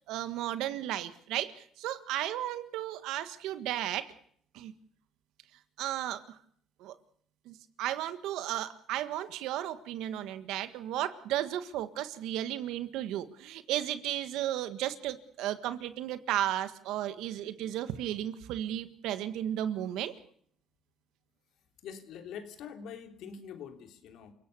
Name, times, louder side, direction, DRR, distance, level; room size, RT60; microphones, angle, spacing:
voice 1, 0.1-4.1 4.5-4.7 5.8-6.4 6.8-6.9 7.4-20.1, right 12 dB, 80° right, 12 dB, 1.6 m, -34 dB
voice 2, 17.3-17.7 21.8-24.3, left 7 dB, 75° left, 6 dB, 3.1 m, -45 dB
28.5 x 17.0 x 6.9 m, 0.64 s
cardioid pair, 100°, 0 cm